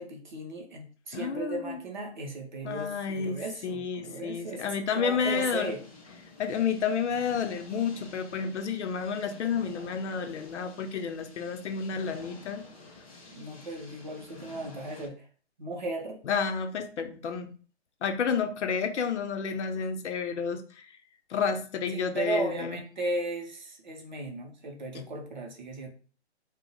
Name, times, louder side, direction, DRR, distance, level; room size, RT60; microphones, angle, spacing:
voice 1, 0.0-5.8 13.3-15.3 15.6-16.2 21.9-25.9, right 2 dB, 45° right, 1 dB, 0.5 m, -36 dB
voice 2, 1.1-1.8 2.6-5.7 6.4-12.6 16.3-17.5 18.0-20.9 21.3-22.8 24.9-25.0, left 6 dB, 85° left, 7 dB, 0.5 m, -30 dB
sound 1, 5.2-15.1, left 3 dB, 35° left, 0.5 m, -50 dB
2.3 x 2.0 x 2.7 m, 0.39 s
hypercardioid pair, 165°, 34 cm